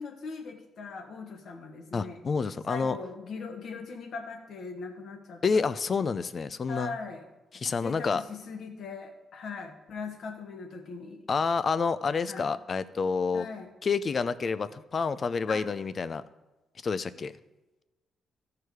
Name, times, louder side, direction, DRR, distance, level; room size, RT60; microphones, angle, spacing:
voice 1, 0.0-2.2 2.7-5.6 6.7-7.3 7.8-11.2 12.3-12.5 13.3-13.7 15.5-15.6, left 4 dB, 70° left, 4 dB, 1.4 m, -40 dB
voice 2, 1.9-3.0 5.4-6.9 7.5-8.2 11.3-13.5 13.8-16.2 16.8-17.3, left 5 dB, 45° left, 14 dB, 0.5 m, -28 dB
13.5 x 4.7 x 4.8 m, 1.1 s
supercardioid pair, 65°, 0 cm